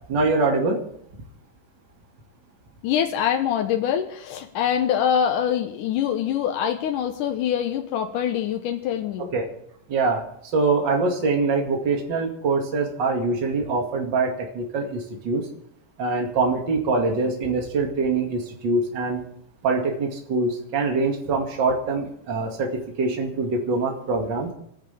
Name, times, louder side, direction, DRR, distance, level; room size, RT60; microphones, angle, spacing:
voice 1, 0.1-0.8 9.2-9.5 9.9-10.2 10.5-15.5 16.0-19.2 19.6-24.5, right 3 dB, 40° right, 1 dB, 2.6 m, -24 dB
voice 2, 2.8-9.3, left 9 dB, 85° left, 4 dB, 2.6 m, -24 dB
29.5 x 10.0 x 3.5 m, 0.69 s
omnidirectional pair, 3.6 m